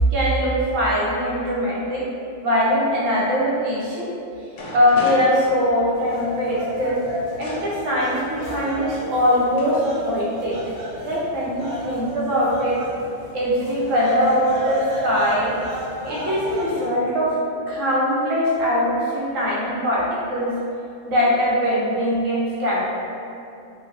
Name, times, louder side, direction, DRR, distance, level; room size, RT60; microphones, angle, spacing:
voice 1, 0.1-2.1 2.4-4.1 4.7-7.0 7.4-10.6 11.0-12.8 13.3-15.5 16.0-17.4 17.7-20.5 21.1-22.9, equal, 85° right, -6 dB, 1.1 m, -21 dB
sound 1, 4.1-4.2 4.5-6.1 7.4-7.6 8.7-8.8 9.6-9.8 10.1-10.6, equal, 60° left, 0.7 m, -35 dB
sound 2, 5.9-16.8, equal, 55° right, 0.9 m, -33 dB
3.0 x 2.2 x 2.5 m, 2.6 s
omnidirectional pair, 1.3 m